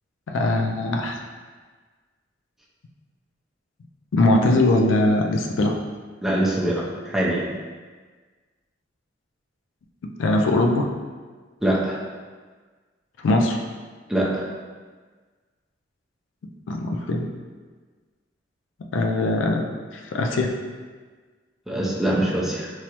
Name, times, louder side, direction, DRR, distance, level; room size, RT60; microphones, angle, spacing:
voice 1, 0.3-1.2 4.1-5.7 10.0-10.9 13.2-13.6 16.7-17.3 18.9-20.5, left 2 dB, 80° left, 2 dB, 0.4 m, -21 dB
voice 2, 6.2-7.5 11.6-12.0 14.1-14.5 21.7-22.7, right 1 dB, ahead, -5 dB, 0.5 m, -23 dB
4.6 x 2.0 x 2.9 m, 1.4 s
head